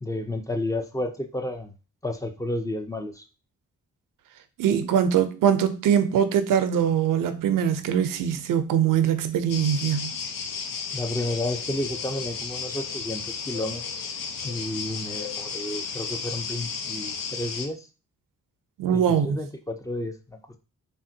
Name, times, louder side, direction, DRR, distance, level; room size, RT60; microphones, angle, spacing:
voice 1, 0.0-1.7 2.0-3.3 10.9-14.2 14.4-17.9 18.9-20.6, left 1 dB, 10° left, 0.4 m, -31 dB
voice 2, 4.6-10.1 18.8-19.4, right 8 dB, 75° right, 0.5 m, -22 dB
sound 1, 9.5-17.7, left 5 dB, 75° left, 0.6 m, -33 dB
3.4 x 2.1 x 2.7 m
cardioid pair, 75°, 33 cm